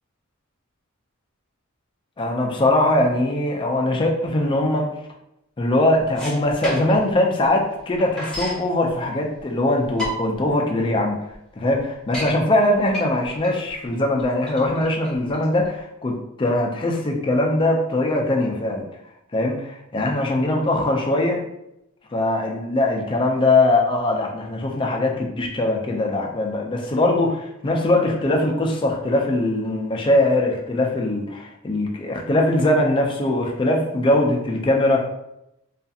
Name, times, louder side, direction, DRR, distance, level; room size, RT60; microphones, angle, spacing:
voice 1, 2.2-4.9 5.6-11.2 11.6-18.8 19.3-21.4 22.1-35.0, left 1 dB, 25° left, 1 dB, 0.3 m, -21 dB
sound 1, 6.0-7.1 7.5-7.6 7.7-8.6 9.4-9.5 9.8-10.5 11.0-11.1 11.3-11.4 11.8-12.3 12.9-15.8, equal, 5° left, 1.1 m, -31 dB
2.7 x 2.4 x 2.3 m, 0.83 s
head